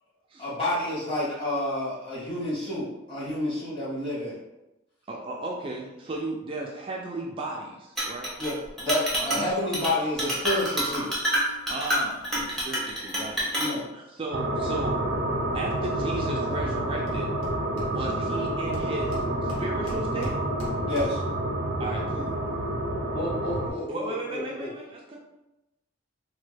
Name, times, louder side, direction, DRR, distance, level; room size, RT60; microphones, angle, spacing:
voice 1, 0.4-4.3 8.4-11.1 13.5-13.8 20.9-21.2, left 1 dB, 25° left, -10 dB, 1.4 m, -29 dB
voice 2, 5.1-8.3 9.2-9.3 11.7-13.5 13.9-15.0 15.5-17.3 17.9-20.3 21.8-22.4 23.9-25.2, right 2 dB, 25° right, -1 dB, 0.3 m, -35 dB
Chink clink, 8.0-8.5 8.8-9.5 9.7-9.9 10.2-13.7, equal, ahead, 0.7 m, -27 dB
sound 1, 14.3-23.7, right 1 dB, 80° right, 0.5 m, -29 dB
Hammer, 16.7-16.8 17.1-18.3 18.7-21.4, left 1 dB, 80° left, 0.9 m, -41 dB
voice 3, 23.1-24.7, equal, 50° left, -6 dB, 0.7 m, -34 dB
3.0 x 2.1 x 3.2 m, 0.95 s
head